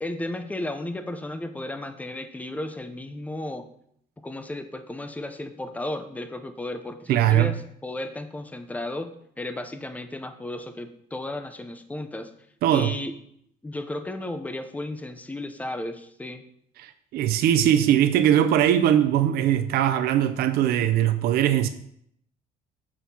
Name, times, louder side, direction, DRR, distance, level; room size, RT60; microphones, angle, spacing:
voice 1, 0.0-3.6 4.2-12.3 12.7-13.1 13.6-16.4, left 1 dB, 10° left, 0.5 m, -34 dB
voice 2, 7.1-7.5 12.6-12.9 16.8-21.7, right 11 dB, 65° right, 0.4 m, -21 dB
6.2 x 5.9 x 2.7 m
cardioid pair, 110°, 17 cm